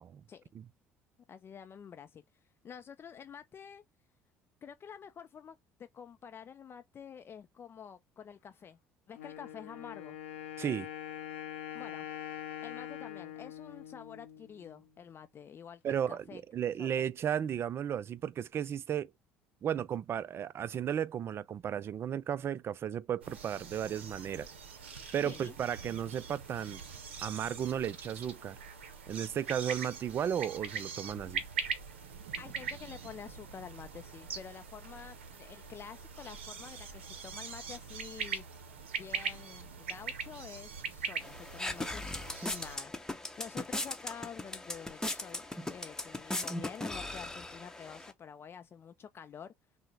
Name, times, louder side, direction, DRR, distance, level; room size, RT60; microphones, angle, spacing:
voice 1, 1.3-2.2 2.6-3.8 4.6-5.6 5.9-8.8 9.1-10.2 11.7-12.1 12.6-16.4 16.8-17.0 25.2-25.5 32.4-38.4 39.0-42.9 43.4-49.5, left 7 dB, 40° left, 0.4 m, -48 dB
Wind instrument woodwind instrument, 9.2-14.9, left 11 dB, 90° left, 0.6 m, -44 dB
voice 2, 10.6-10.9 15.8-19.1 19.6-24.5 25.1-26.8 27.2-28.6 29.1-31.4, right 9 dB, 40° right, 0.3 m, -34 dB
sound 1, 23.2-42.8, right 6 dB, 90° right, 0.6 m, -42 dB
sound 2, 41.2-48.1, left 2 dB, 10° left, 0.8 m, -39 dB
5.4 x 2.1 x 3.3 m
hypercardioid pair, 65°, 6 cm